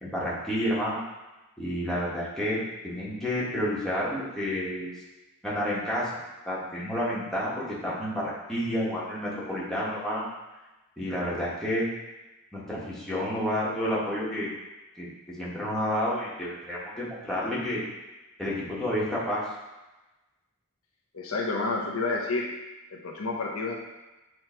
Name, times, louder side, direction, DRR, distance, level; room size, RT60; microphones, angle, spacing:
voice 1, 0.0-1.0 1.6-4.9 5.4-6.2 6.5-10.3 11.0-11.9 12.5-14.5 15.0-15.1 15.4-17.8 18.4-19.4, equal, ahead, -8 dB, 1.6 m, -30 dB
voice 2, 21.1-22.5 22.9-23.7, left 3 dB, 65° left, -1 dB, 0.9 m, -29 dB
7.8 x 3.2 x 4.5 m, 1.1 s
head